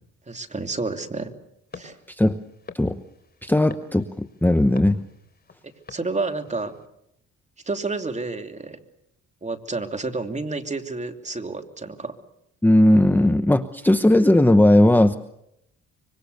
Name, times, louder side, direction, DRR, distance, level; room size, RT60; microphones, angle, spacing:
voice 1, 0.3-1.3 1.7-2.0 5.6-6.8 7.6-8.8 9.4-12.2, right 3 dB, 25° right, 5 dB, 3.0 m, -30 dB
sound 1, 1.7-6.9, left 4 dB, 30° left, 3.8 m, -47 dB
voice 2, 3.4-5.0 12.6-15.2, left 1 dB, 5° left, 10 dB, 1.0 m, -17 dB
26.0 x 24.5 x 6.9 m, 0.78 s
cardioid pair, 90°, 30 cm